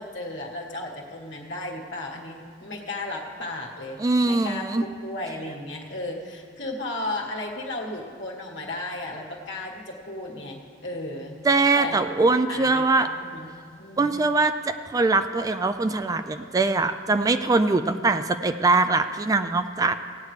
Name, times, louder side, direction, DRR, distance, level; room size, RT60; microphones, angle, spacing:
voice 1, 0.0-11.3 11.7-12.2 12.5-14.2, left 2 dB, 70° left, -1 dB, 1.6 m, -35 dB
voice 2, 4.0-4.8 11.4-13.1 14.0-19.9, right 3 dB, 20° right, 9 dB, 0.3 m, -22 dB
17.5 x 9.3 x 3.3 m, 2.1 s
head